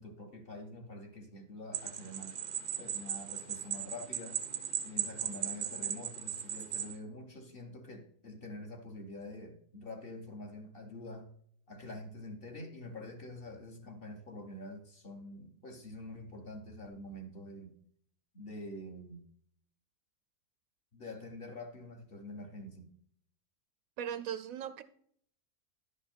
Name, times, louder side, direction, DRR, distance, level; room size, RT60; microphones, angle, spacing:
voice 1, 0.0-2.4 2.8-4.4 4.8-11.3 11.7-17.7 18.3-19.2 20.9-22.9, left 1 dB, 45° left, 1.1 m, -46 dB
sound 1, 1.7-7.0, right 9 dB, 55° right, 0.6 m, -37 dB
voice 2, 24.0-24.8, right 9 dB, 70° right, 0.9 m, -38 dB
10.5 x 5.3 x 4.3 m
omnidirectional pair, 1.6 m